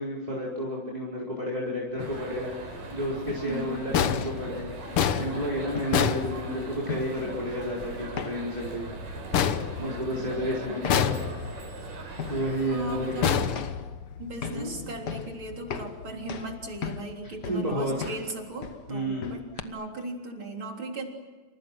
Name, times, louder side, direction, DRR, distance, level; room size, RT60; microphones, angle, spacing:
voice 1, 0.0-4.8 5.2-8.8 9.8-11.2 12.3-13.3 14.5-14.7 17.2-18.1 18.9-19.6, equal, 10° right, -3 dB, 4.4 m, -31 dB
sound 1, 1.9-19.6, left 7 dB, 80° left, 0.9 m, -41 dB
sound 2, 2.0-13.6, right 3 dB, 80° right, 6.7 m, -40 dB
voice 2, 3.4-3.9 9.8-10.8 12.7-13.3 14.2-21.1, right 2 dB, 35° right, 2 dB, 4.2 m, -37 dB
sound 3, 3.9-7.0 9.3-10.4 10.9-11.7 13.2-14.3, left 8 dB, 65° left, 1.4 m, -27 dB
30.0 x 28.0 x 6.2 m, 1.4 s
omnidirectional pair, 3.9 m